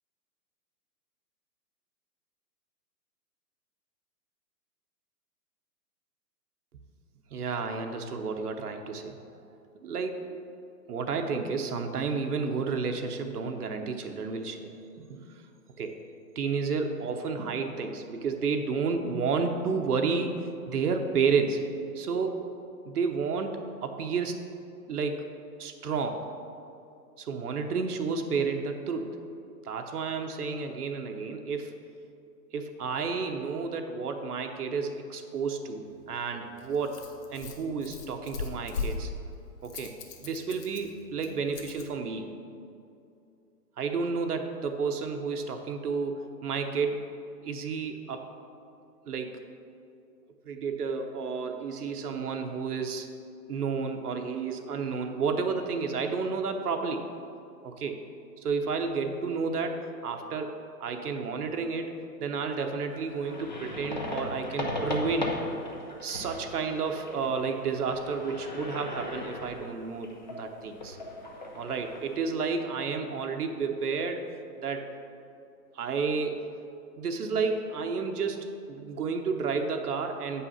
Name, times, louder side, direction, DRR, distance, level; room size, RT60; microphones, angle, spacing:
voice 1, 7.3-9.2 9.8-10.5 10.9-15.2 15.8-16.0 16.4-20.4 20.7-21.6 21.9-22.4 22.8-24.4 24.9-25.3 25.6-26.2 27.2-29.2 29.6-31.8 32.5-39.1 39.6-40.0 40.2-42.3 43.8-47.1 47.4-48.3 49.1-49.4 50.5-53.1 53.5-57.1 57.6-58.0 58.4-65.4 66.0-71.0 71.6-74.2 74.6-74.9 75.7-76.4 77.0-80.5, right 5 dB, 65° right, 5 dB, 0.9 m, -31 dB
Rattle, 35.9-41.9, left 4 dB, 70° left, 1.3 m, -39 dB
sound 1, 62.9-72.2, left 1 dB, 30° left, 0.5 m, -38 dB
8.1 x 5.6 x 5.6 m, 2.6 s
hypercardioid pair, 165°, 49 cm